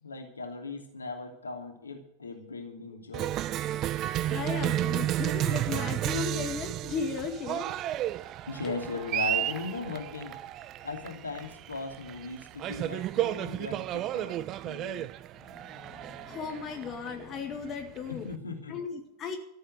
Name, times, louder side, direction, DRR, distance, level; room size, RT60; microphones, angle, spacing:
voice 1, 0.0-3.4 8.5-10.4 10.8-15.1 18.1-18.8, left 3 dB, 75° left, 3 dB, 2.9 m, -38 dB
Cheering, 3.1-18.3, right 13 dB, 35° right, 0.6 m, -32 dB
voice 2, 4.3-7.7 8.6-8.7 15.5-18.3 18.7-19.4, left 5 dB, 30° left, 4 dB, 2.0 m, -36 dB
14.0 x 7.9 x 9.7 m, 0.77 s
figure-of-eight pair, 90°, 0 cm